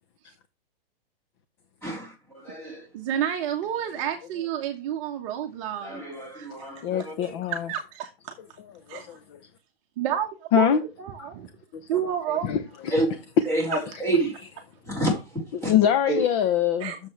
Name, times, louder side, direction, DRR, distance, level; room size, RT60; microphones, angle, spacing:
voice 1, 1.8-2.9 5.8-7.3 12.9-13.2 13.5-14.4 14.8-15.7 16.1-16.3, right 1 dB, 10° left, 3.8 m, -28 dB
voice 2, 2.9-6.0 6.3-6.7 7.5-8.3 8.9-9.2 10.0-11.5 11.9-12.5 16.8-17.0, right 9 dB, 35° right, 1.1 m, -30 dB
voice 3, 6.8-7.7 8.9-9.4 10.5-10.8 11.2-11.3 12.3-12.9 15.5-16.9, left 9 dB, 25° left, 0.7 m, -24 dB
8.5 x 7.0 x 3.2 m
hypercardioid pair, 155°, 30 cm